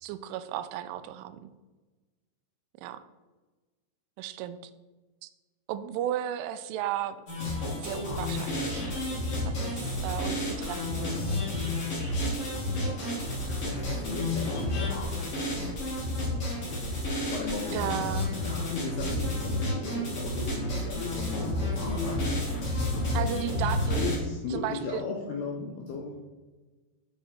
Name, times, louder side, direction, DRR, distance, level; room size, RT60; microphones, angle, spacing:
voice 1, 0.0-1.5 2.8-3.0 4.2-4.6 5.2-5.3 5.7-7.2 7.8-9.0 9.5-11.4 17.7-18.3 23.1-24.2 24.5-25.0, right 11 dB, 85° right, 12 dB, 3.0 m, -35 dB
sound 1, 7.3-24.2, left 1 dB, 40° left, 3.0 m, -30 dB
voice 2, 13.5-15.1 17.3-22.3 22.6-22.8 23.1-26.3, left 4 dB, 80° left, 0 dB, 2.3 m, -37 dB
9.0 x 4.7 x 4.2 m, 1.2 s
omnidirectional pair, 5.5 m